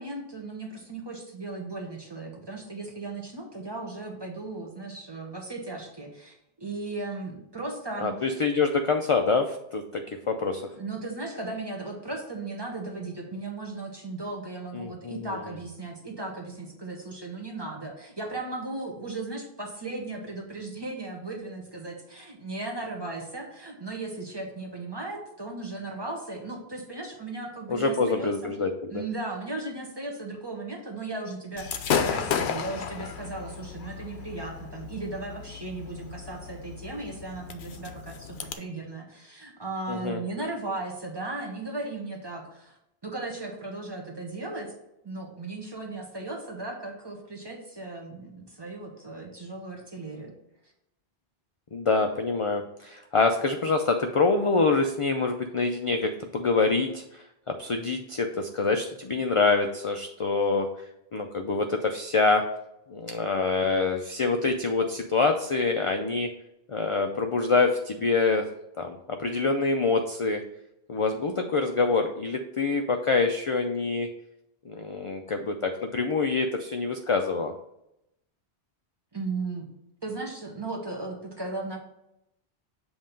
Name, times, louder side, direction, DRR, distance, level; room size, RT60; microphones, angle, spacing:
voice 1, 0.0-8.1 10.7-28.5 28.9-42.8 43.0-44.7 45.0-50.3 79.1-79.6 80.0-81.8, right 2 dB, 25° right, 1 dB, 1.0 m, -36 dB
voice 2, 8.0-10.6 14.7-15.3 27.7-28.7 39.9-40.2 51.7-57.2 57.6-60.7 61.1-62.4 62.9-66.3 66.7-68.5 68.8-70.4 70.9-74.1 74.7-77.5, left 4 dB, 50° left, 4 dB, 0.4 m, -26 dB
Gunshot gunfire / Fireworks, 31.6-38.5, left 7 dB, 85° left, 0.9 m, -33 dB
7.5 x 2.9 x 5.1 m, 0.84 s
omnidirectional pair, 1.1 m